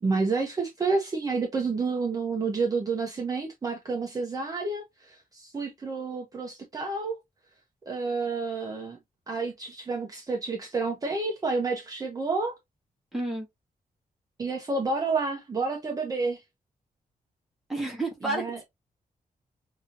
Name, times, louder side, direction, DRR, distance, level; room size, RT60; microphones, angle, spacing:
voice 1, 0.0-7.2 7.9-9.0 9.3-12.5 14.4-16.4 18.2-18.6, right 4 dB, 25° right, 0.8 m, -29 dB
voice 2, 13.1-13.5 17.7-18.6, right 2 dB, ahead, 1.6 m, -30 dB
5.4 x 2.8 x 2.5 m
wide cardioid pair, 175°, 14 cm